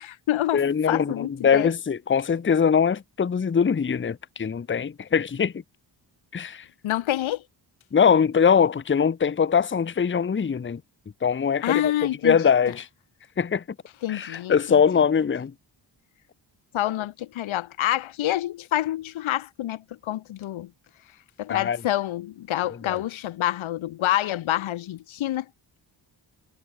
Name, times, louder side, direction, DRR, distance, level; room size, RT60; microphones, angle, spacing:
voice 1, 0.0-1.7 6.8-7.4 11.6-12.4 14.0-14.8 16.7-20.7 21.4-25.5, left 13 dB, 90° left, 1.1 m, -27 dB
voice 2, 0.5-5.5 6.3-6.7 7.9-10.8 11.2-11.9 12.2-12.9 13.4-13.6 14.1-15.5 21.5-21.8 22.8-23.0, left 7 dB, 25° left, 0.8 m, -22 dB
cardioid pair, 65°, 46 cm